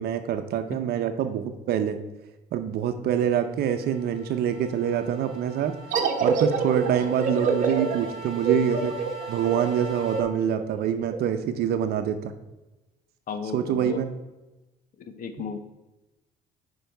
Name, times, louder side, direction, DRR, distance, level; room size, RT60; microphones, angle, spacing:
voice 1, 0.0-2.0 2.5-5.7 6.2-9.0 9.3-12.3 13.5-14.1, right 9 dB, 70° right, 8 dB, 0.8 m, -25 dB
sound 1, 3.4-10.2, right 3 dB, ahead, 2.2 m, -42 dB
sound 2, 5.9-11.2, right 5 dB, 50° right, 1.2 m, -27 dB
voice 2, 13.3-14.0 15.0-15.6, left 5 dB, 55° left, 8 dB, 1.1 m, -34 dB
10.0 x 4.7 x 4.6 m, 1.1 s
cardioid pair, 110°, 17 cm